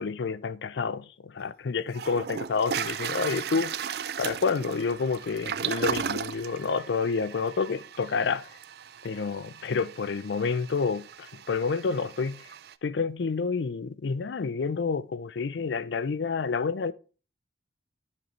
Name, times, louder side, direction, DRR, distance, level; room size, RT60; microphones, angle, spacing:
voice 1, 0.0-3.7 4.2-8.5 9.0-12.5 12.8-16.9, left 5 dB, 75° left, 0.4 m, -29 dB
Toilet flush, 1.4-1.5 1.9-12.7, right 8 dB, 60° right, 0.4 m, -36 dB
10.5 x 6.7 x 3.1 m
head